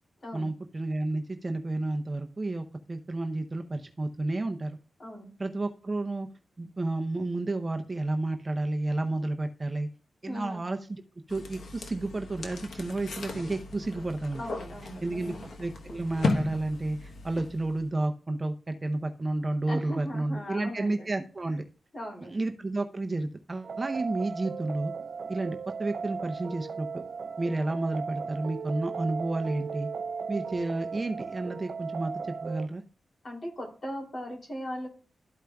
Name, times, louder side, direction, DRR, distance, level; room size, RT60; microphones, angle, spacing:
voice 1, 0.3-4.8 5.4-6.3 6.6-9.9 10.2-11.0 11.3-14.4 15.0-21.6 22.2-24.9 25.3-27.0 27.4-29.9 30.3-32.1 32.4-32.8, right 2 dB, 25° right, 5 dB, 0.6 m, -31 dB
voice 2, 5.0-5.3 10.3-10.7 14.4-15.4 19.7-21.1 21.5-21.6 21.9-22.3 33.2-34.9, equal, 40° left, 0 dB, 2.9 m, -38 dB
sound 1, 11.3-17.9, left 3 dB, 70° left, 1.0 m, -36 dB
sound 2, 23.6-32.7, right 5 dB, 65° right, 0.3 m, -37 dB
12.5 x 4.9 x 2.3 m, 0.38 s
cardioid pair, 95°, 0 cm